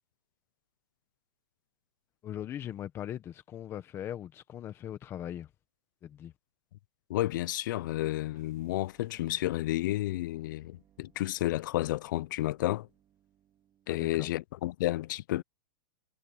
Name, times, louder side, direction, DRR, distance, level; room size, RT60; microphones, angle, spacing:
voice 1, 2.2-5.5 6.0-6.3 13.9-14.3, left 10 dB, 20° left, 1.1 m, -40 dB
voice 2, 7.1-12.9 13.9-15.4, left 16 dB, 50° left, 0.5 m, -31 dB
sound 1, 8.3-14.5, right 11 dB, 20° right, 2.5 m, -68 dB
supercardioid pair, 160°, 13 cm